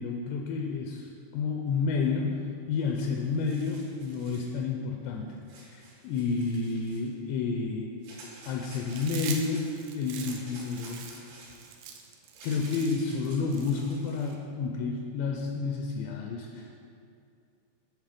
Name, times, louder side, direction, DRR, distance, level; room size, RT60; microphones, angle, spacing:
voice 1, 0.0-5.3 5.7-7.9 8.4-9.7 9.9-11.1 12.4-16.7, left 4 dB, 80° left, 1 dB, 2.6 m, -30 dB
sound 1, 2.9-3.0 3.2-4.5 5.5-7.1 8.0-9.7 10.1-14.3, right 2 dB, 65° right, 3.8 m, -50 dB
Chewing mastication, 8.9-14.4, right 7 dB, 90° right, 2.2 m, -43 dB
10.5 x 5.0 x 5.0 m, 2.5 s
omnidirectional pair, 5.3 m